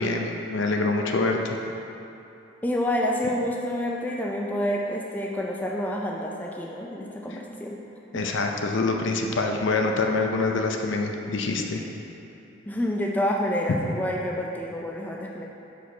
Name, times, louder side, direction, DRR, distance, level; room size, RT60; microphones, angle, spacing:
voice 1, 0.0-1.6 8.1-11.8, left 3 dB, 65° left, 2 dB, 0.5 m, -25 dB
voice 2, 2.6-7.8 8.1-8.2 12.7-15.4, left 1 dB, 10° left, -1 dB, 0.4 m, -28 dB
6.3 x 5.0 x 3.9 m, 2.9 s
head